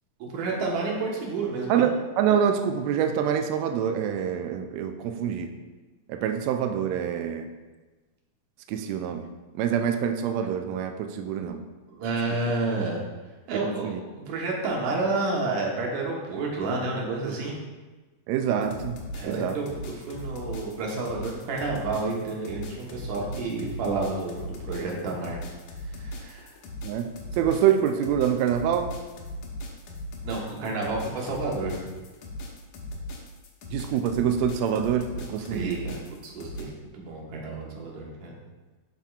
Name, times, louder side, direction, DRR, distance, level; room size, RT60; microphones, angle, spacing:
voice 1, 0.2-1.8 11.9-13.0 13.5-13.9 14.3-17.5 19.2-25.4 26.0-26.5 30.2-31.8 35.3-38.3, right 3 dB, 70° right, -2 dB, 2.3 m, -30 dB
voice 2, 1.7-5.6 6.1-7.5 8.7-9.3 9.6-11.6 13.5-14.0 18.3-19.6 26.8-29.0 33.7-35.8, right 8 dB, 85° right, 6 dB, 1.5 m, -26 dB
sound 1, 18.6-36.6, left 1 dB, 75° left, 2.1 m, -38 dB
11.0 x 4.3 x 2.4 m, 1.2 s
omnidirectional pair, 3.6 m